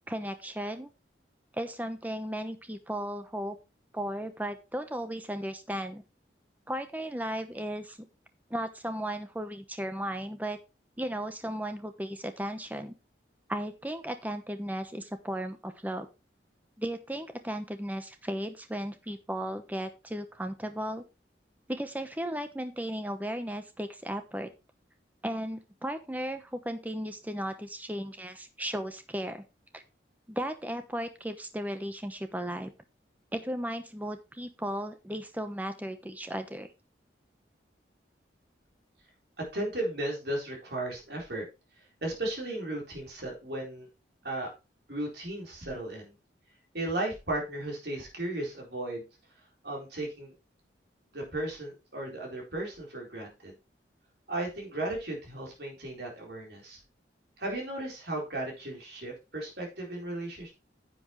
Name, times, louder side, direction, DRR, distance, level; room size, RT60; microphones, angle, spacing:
voice 1, 0.1-0.9 1.5-3.6 3.9-6.0 6.7-8.0 8.5-10.6 11.0-12.9 13.5-16.1 16.8-21.0 21.7-24.5 25.2-29.4 29.7-29.8 30.3-32.7 33.3-36.7, equal, 10° right, 8 dB, 0.9 m, -35 dB
voice 2, 39.5-41.4 42.0-43.9 44.2-44.5 44.9-46.1 46.7-49.1 49.6-50.3 51.1-53.5 54.3-56.8 57.4-60.5, right 1 dB, 65° right, -1 dB, 4.1 m, -35 dB
10.0 x 7.9 x 3.1 m, 0.27 s
head